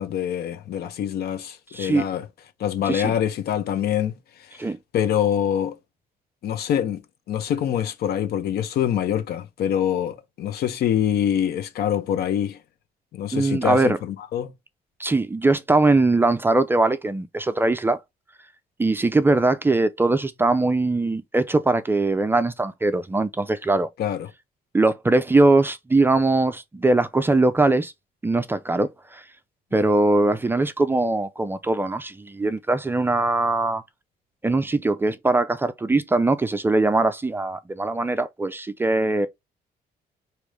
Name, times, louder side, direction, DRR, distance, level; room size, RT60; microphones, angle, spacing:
voice 1, 0.0-2.3 2.6-5.8 6.4-7.0 7.3-12.6 13.1-14.5 24.0-24.3, left 10 dB, 75° left, 0.9 m, -25 dB
voice 2, 1.7-2.0 2.9-3.1 4.6-4.8 13.3-14.0 15.0-18.0 18.8-23.9 24.7-27.9 28.2-29.2 29.7-33.8 34.4-39.3, right 2 dB, 15° right, 0.4 m, -21 dB
5.0 x 3.0 x 3.1 m
cardioid pair, 155°, 16 cm